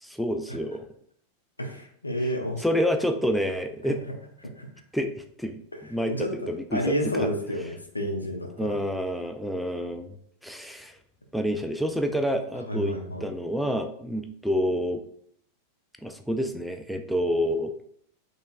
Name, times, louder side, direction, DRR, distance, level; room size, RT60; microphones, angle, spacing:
voice 1, 0.0-0.9 2.6-4.0 4.9-5.6 5.9-6.1 6.5-6.8 7.1-7.3 8.6-10.2 10.4-11.0 11.3-15.0 16.0-17.7, equal, ahead, 5 dB, 0.4 m, -28 dB
voice 2, 1.6-2.7 4.6-4.7 6.1-8.8 12.7-13.3, equal, 80° left, 3 dB, 0.7 m, -30 dB
5.1 x 3.1 x 2.4 m, 0.67 s
figure-of-eight pair, 90°, 0 cm